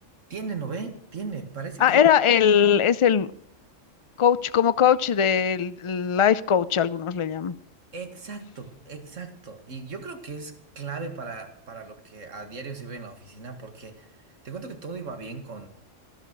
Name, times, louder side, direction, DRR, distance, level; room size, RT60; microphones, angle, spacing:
voice 1, 0.3-2.0 7.9-14.2 14.4-15.7, right 4 dB, 75° right, 6 dB, 2.3 m, -37 dB
voice 2, 1.8-3.3 4.2-7.5, left 8 dB, 40° left, 16 dB, 0.4 m, -20 dB
14.0 x 11.5 x 6.2 m, 0.65 s
omnidirectional pair, 1.3 m